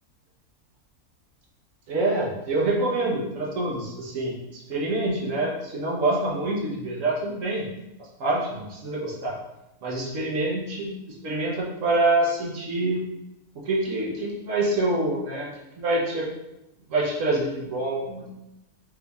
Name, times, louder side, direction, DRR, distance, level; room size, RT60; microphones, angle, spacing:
voice 1, 1.9-4.3 4.7-7.7 8.2-9.3 9.8-10.9 11.2-13.0 13.5-15.5 15.8-16.3 16.9-18.3, right 2 dB, 60° right, -3 dB, 1.2 m, -26 dB
5.2 x 3.3 x 2.3 m, 0.94 s
omnidirectional pair, 1.6 m